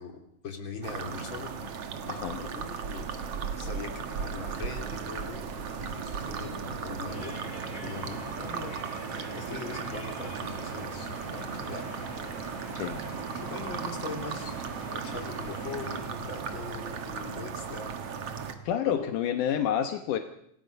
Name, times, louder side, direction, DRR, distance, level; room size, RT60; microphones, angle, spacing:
voice 1, 0.0-1.5 2.4-8.7 9.0-11.9 13.4-14.6 14.9-17.9 18.8-19.1, left 4 dB, 40° left, 3 dB, 3.7 m, -41 dB
sound 1, 0.8-18.6, right 6 dB, 55° right, 2.3 m, -36 dB
voice 2, 2.1-2.4 12.8-13.0 18.7-20.2, left 9 dB, 80° left, 7 dB, 2.6 m, -28 dB
sound 2, 4.5-17.4, right 2 dB, 80° right, 7.3 m, -48 dB
sound 3, 7.1-16.1, equal, 60° left, 9.3 m, -45 dB
27.0 x 19.5 x 5.3 m, 0.71 s
omnidirectional pair, 3.6 m